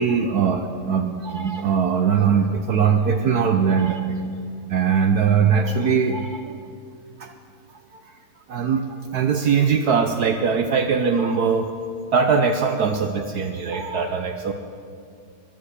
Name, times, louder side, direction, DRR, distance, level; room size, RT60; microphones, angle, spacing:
voice 1, 0.0-4.1 4.7-6.6 7.2-7.3 7.9-8.1 8.5-11.7 12.1-14.5, right 6 dB, 70° right, 7 dB, 0.9 m, -21 dB
12.5 x 10.5 x 8.2 m, 2.3 s
omnidirectional pair, 2.4 m